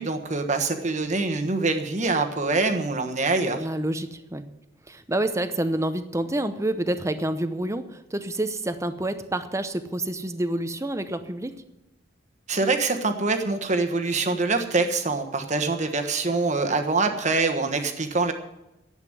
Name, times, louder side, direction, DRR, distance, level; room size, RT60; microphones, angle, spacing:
voice 1, 0.0-3.7 12.5-18.3, right 3 dB, 40° right, 6 dB, 1.4 m, -24 dB
voice 2, 3.6-4.4 4.9-11.5, right 1 dB, 15° right, 10 dB, 0.8 m, -28 dB
11.0 x 8.2 x 9.6 m, 0.94 s
head